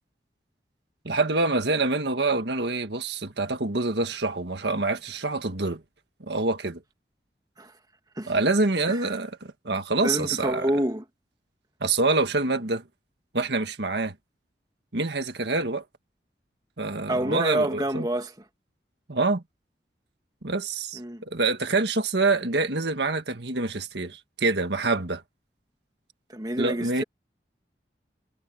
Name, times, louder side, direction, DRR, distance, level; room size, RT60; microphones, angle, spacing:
voice 1, 1.0-5.8 6.3-6.8 8.3-10.7 11.8-12.8 13.3-14.1 14.9-15.8 16.8-18.1 19.1-19.4 20.4-25.2 26.6-27.0, right 3 dB, 80° right, 1.7 m, -26 dB
voice 2, 10.0-11.0 17.1-18.3 21.0-21.2 26.3-27.0, right 1 dB, 20° right, 2.1 m, -27 dB
head